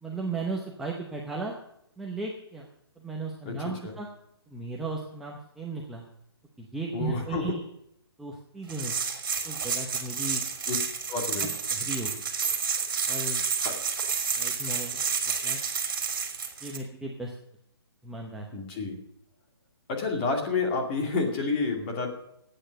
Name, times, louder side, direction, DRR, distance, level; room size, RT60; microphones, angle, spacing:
voice 1, 0.0-1.5 2.0-2.6 3.0-4.1 4.5-6.0 6.6-7.6 8.2-8.9 9.4-10.4 11.7-12.2 13.1-13.4 14.4-14.9 15.4-15.6 16.6-17.3 18.0-18.5, right 3 dB, ahead, -2 dB, 0.8 m, -35 dB
voice 2, 6.9-7.6 10.7-10.8 11.1-11.5 18.5-19.0 19.9-22.1, left 4 dB, 20° left, 1 dB, 2.4 m, -29 dB
sound 1, 8.7-16.8, right 6 dB, 50° right, 3.0 m, -30 dB
15.0 x 9.1 x 6.6 m, 0.78 s
hypercardioid pair, 170°, 14 cm